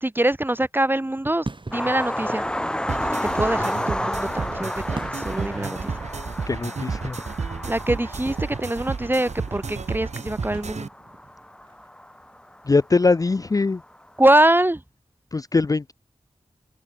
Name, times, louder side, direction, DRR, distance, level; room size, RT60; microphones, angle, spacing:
voice 1, 0.0-2.5 3.3-5.9 7.6-10.9 14.2-14.8, right 1 dB, 15° right, 1.1 m, -23 dB
sound 1, 0.8-11.9, right 2 dB, 40° right, 5.1 m, -43 dB
sound 2, 1.7-12.8 13.8-13.9 14.2-14.3, left 1 dB, 5° left, 0.8 m, -31 dB
sound 3, 2.9-10.9, right 5 dB, 70° right, 1.4 m, -32 dB
voice 2, 6.5-7.2 12.6-13.8 15.3-15.9, left 3 dB, 30° left, 0.4 m, -21 dB
cardioid pair, 45°, 12 cm